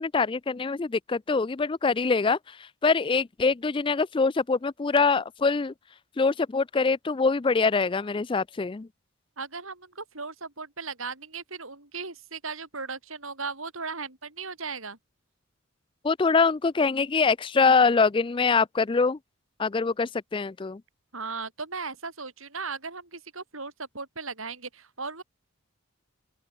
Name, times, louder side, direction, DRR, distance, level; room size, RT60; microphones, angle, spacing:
voice 1, 0.0-5.7 6.2-8.9 16.0-19.2 19.6-20.8, left 4 dB, 25° left, 0.4 m, -24 dB
voice 2, 9.4-15.0 21.1-25.2, right 4 dB, 75° right, 6.7 m, -37 dB
open air
head